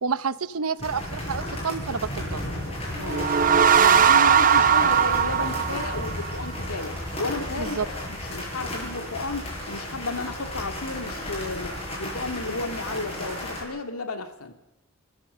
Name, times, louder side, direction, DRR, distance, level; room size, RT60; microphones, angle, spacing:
voice 1, 0.0-2.4 7.6-7.9, right 5 dB, 80° right, 15 dB, 0.8 m, -29 dB
sound 1, 0.8-13.6, left 1 dB, 30° left, 7.8 m, -34 dB
voice 2, 3.0-14.5, left 3 dB, 90° left, 7 dB, 2.0 m, -33 dB
sound 2, 3.0-6.5, right 7 dB, 40° right, 0.8 m, -19 dB
29.0 x 14.5 x 6.7 m, 0.93 s
head